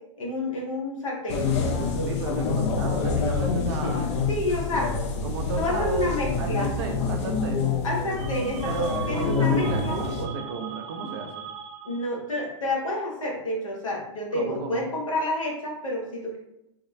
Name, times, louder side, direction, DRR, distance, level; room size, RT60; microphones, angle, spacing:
voice 1, 0.2-1.5 4.3-4.9 5.6-6.7 7.8-10.0 11.8-16.4, left 1 dB, 90° left, -2 dB, 1.3 m, -29 dB
sound 1, 1.3-10.3, left 4 dB, 60° left, 0.7 m, -27 dB
voice 2, 2.1-4.0 5.2-7.7 8.6-11.4 14.3-14.8, right 4 dB, 55° right, 3 dB, 0.8 m, -34 dB
sound 2, 8.1-12.3, right 7 dB, 35° right, 0.4 m, -39 dB
3.7 x 2.4 x 3.2 m, 0.85 s
hypercardioid pair, 120°, 16 cm